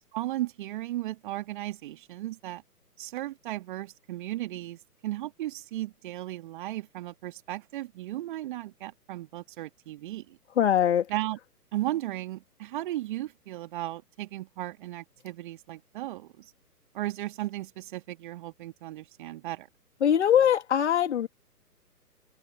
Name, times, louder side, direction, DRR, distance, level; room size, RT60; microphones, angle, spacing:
voice 1, 0.1-2.6 3.0-10.4 11.1-11.4 11.7-16.5 16.9-19.7, right 15 dB, 30° right, 2.3 m, -35 dB
voice 2, 10.6-11.1 20.0-21.3, left 9 dB, 45° left, 3.0 m, -22 dB
figure-of-eight pair, 130°, 47 cm